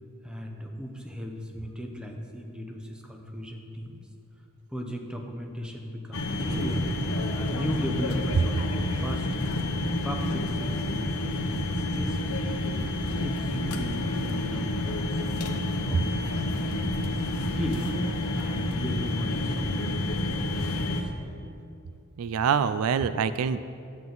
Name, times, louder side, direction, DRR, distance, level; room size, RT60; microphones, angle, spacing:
voice 1, 0.2-4.0 4.7-6.9 7.3-9.5 10.0-12.5 13.0-21.1, equal, 5° right, 2 dB, 0.7 m, -37 dB
sound 1, 6.1-21.0, left 1 dB, 80° left, 0.9 m, -29 dB
voice 2, 22.2-23.6, right 7 dB, 80° right, 13 dB, 0.3 m, -25 dB
10.5 x 7.6 x 3.9 m, 2.5 s
head